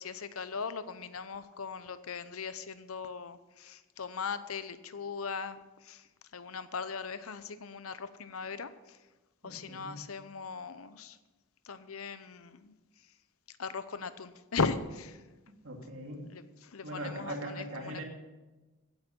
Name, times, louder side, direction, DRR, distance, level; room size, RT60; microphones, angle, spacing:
voice 1, 0.0-6.1 6.3-9.0 9.4-11.2 11.6-12.7 13.6-15.2 16.3-18.0, left 5 dB, 85° left, 13 dB, 0.8 m, -38 dB
voice 2, 9.4-10.1 15.6-16.3 16.8-18.0, right 1 dB, 65° right, 2 dB, 2.5 m, -40 dB
16.0 x 9.2 x 5.4 m, 1.1 s
head